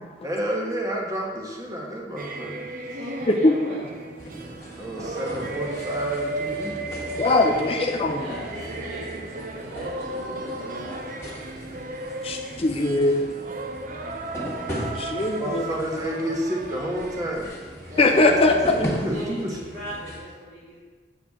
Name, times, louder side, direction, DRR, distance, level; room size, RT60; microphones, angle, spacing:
voice 1, 0.2-2.7 4.8-6.8 15.3-17.5 19.0-19.6, right 1 dB, 20° right, -1 dB, 1.2 m, -30 dB
sound 1, 2.2-19.3, right 2 dB, 50° right, 0.6 m, -35 dB
voice 2, 2.7-3.9 7.5-7.7 8.1-11.0 17.9-20.8, equal, 90° right, -12 dB, 2.3 m, -37 dB
sound 2, 4.2-20.2, equal, 15° left, 1.6 m, -38 dB
voice 3, 7.2-8.2 12.2-13.3 15.0-15.7 18.0-18.9, left 2 dB, 35° left, 3 dB, 0.5 m, -20 dB
7.9 x 6.9 x 3.6 m, 1.5 s
head